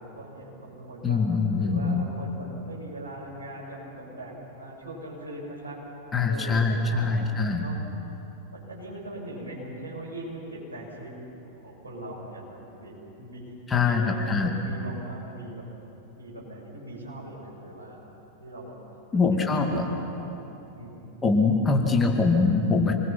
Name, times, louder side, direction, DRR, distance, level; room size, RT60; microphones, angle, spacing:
voice 1, 0.0-1.2 1.5-5.8 6.3-7.3 7.6-7.8 8.5-11.2 11.6-15.7 16.2-18.1 18.4-18.7 19.1-20.4 20.7-21.1, right 1 dB, 75° right, -4 dB, 7.0 m, -40 dB
voice 2, 1.0-2.1 6.1-7.7 13.7-14.5 19.1-19.9 21.2-22.9, left 4 dB, 15° left, 2 dB, 2.2 m, -23 dB
27.0 x 21.0 x 6.0 m, 2.9 s
figure-of-eight pair, 90°, 0 cm